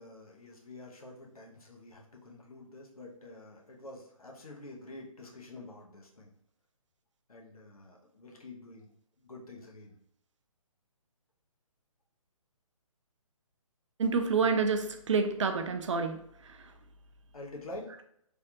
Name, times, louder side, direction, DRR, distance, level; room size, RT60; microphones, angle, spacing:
voice 1, 0.0-6.3 7.3-8.9 9.2-10.0 17.3-18.0, left 2 dB, 85° left, -1 dB, 0.9 m, -48 dB
voice 2, 14.0-16.7, right 4 dB, 55° right, 6 dB, 0.5 m, -29 dB
3.3 x 2.4 x 2.8 m, 0.71 s
figure-of-eight pair, 145°, 18 cm